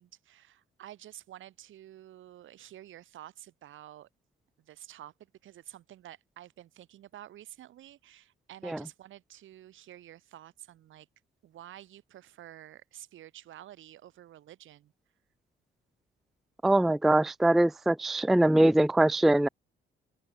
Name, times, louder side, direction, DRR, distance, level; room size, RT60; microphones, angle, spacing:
voice 1, 0.0-4.1 4.6-5.1 5.4-11.1 11.4-14.9, right 12 dB, 80° right, 6.7 m, -50 dB
voice 2, 16.6-19.5, right 1 dB, ahead, 0.3 m, -23 dB
open air
cardioid pair, 90°, 20 cm